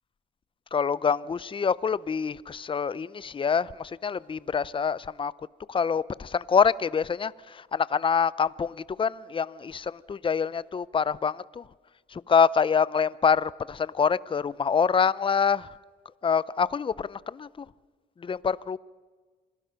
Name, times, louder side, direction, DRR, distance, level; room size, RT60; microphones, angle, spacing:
voice 1, 0.7-5.3 5.7-11.6 12.1-15.7 16.2-17.7 18.2-18.8, left 6 dB, 25° left, 0.5 m, -26 dB
26.5 x 18.0 x 5.8 m
cardioid pair, 90°, 20 cm